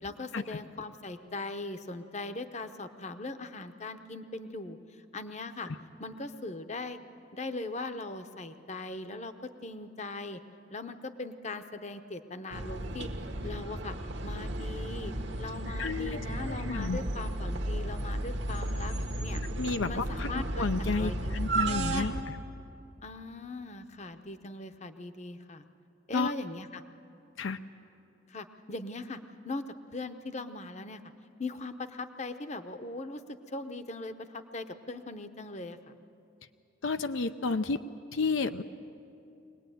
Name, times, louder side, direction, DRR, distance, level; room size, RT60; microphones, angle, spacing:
voice 1, 0.0-4.8 5.1-5.7 6.0-7.0 7.3-10.4 10.7-13.1 13.4-14.0 14.2-15.1 15.4-19.0 19.2-19.4 19.8-20.7 21.0-21.4 21.9-22.2 23.0-25.6 26.1-26.8 28.3-29.6 29.9-31.0 31.4-35.8, left 2 dB, 35° left, 9 dB, 0.8 m, -40 dB
sound 1, 12.5-22.2, right 1 dB, 65° right, 1.4 m, -34 dB
voice 2, 15.8-16.2 16.5-17.0 19.6-22.1 26.1-26.3 27.4-27.6 36.8-37.8 38.1-38.6, left 4 dB, 80° left, 9 dB, 0.6 m, -31 dB
23.5 x 19.0 x 9.2 m, 2.7 s
head